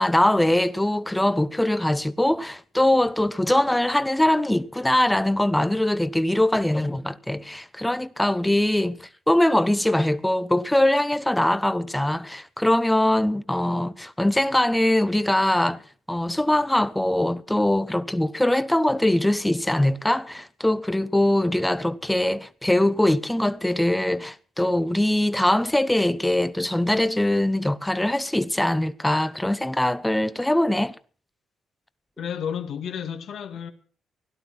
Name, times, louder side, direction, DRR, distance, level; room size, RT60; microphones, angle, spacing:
voice 1, 0.0-15.8 16.1-31.0, left 1 dB, 5° left, 0.9 m, -22 dB
voice 2, 32.2-33.7, left 8 dB, 70° left, 2.2 m, -31 dB
17.0 x 11.5 x 6.0 m
cardioid pair, 90°, 0 cm